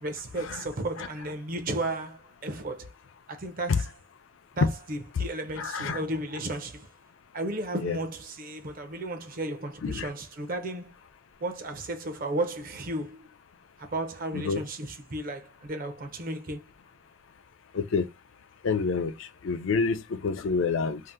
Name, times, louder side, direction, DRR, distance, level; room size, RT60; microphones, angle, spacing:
voice 1, 0.0-2.9 3.3-3.8 4.6-6.9 7.3-11.0 11.4-13.3 13.8-16.6, right 1 dB, 45° right, 0.5 m, -34 dB
voice 2, 5.6-6.0 7.8-8.0 9.8-10.1 14.3-14.6 17.7-18.1 18.6-21.0, left 5 dB, 75° left, 0.4 m, -28 dB
2.7 x 2.1 x 3.3 m
head